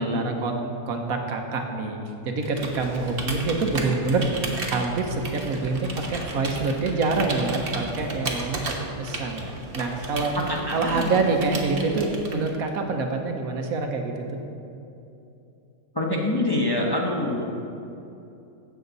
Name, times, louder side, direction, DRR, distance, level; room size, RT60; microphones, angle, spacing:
voice 1, 0.0-4.3 4.7-8.6 9.0-10.4 10.7-14.4, right 3 dB, 75° right, 3 dB, 1.4 m, -26 dB
Computer keyboard, 2.4-12.7, right 2 dB, 40° right, 1.3 m, -34 dB
voice 2, 10.5-11.1 15.9-17.4, left 1 dB, 20° left, -2 dB, 0.9 m, -25 dB
16.0 x 7.1 x 4.0 m, 2.8 s
omnidirectional pair, 1.5 m